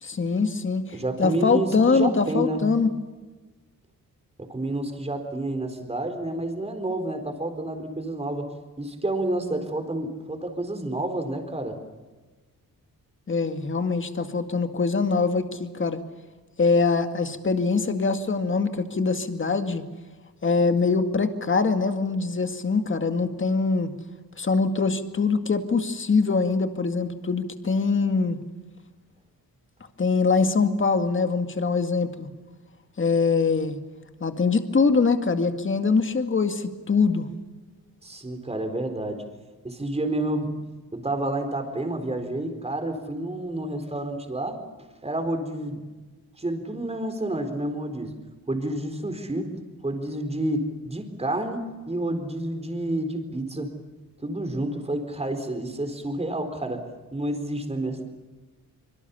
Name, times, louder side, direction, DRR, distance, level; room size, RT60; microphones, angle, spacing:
voice 1, 0.0-2.9 13.3-16.0 16.6-19.8 20.4-23.9 24.4-28.4 30.0-32.3 33.0-33.8 34.2-37.3, left 4 dB, 35° left, 7 dB, 2.1 m, -23 dB
voice 2, 0.9-2.6 4.4-8.5 8.8-11.8 38.0-39.2 39.6-40.5 40.9-44.6 45.0-45.9 46.4-48.1 48.5-49.5 49.8-53.7 54.2-56.8 57.1-58.0, right 1 dB, 15° right, 6 dB, 4.2 m, -29 dB
25.5 x 24.0 x 7.1 m, 1.3 s
cardioid pair, 110°, 36 cm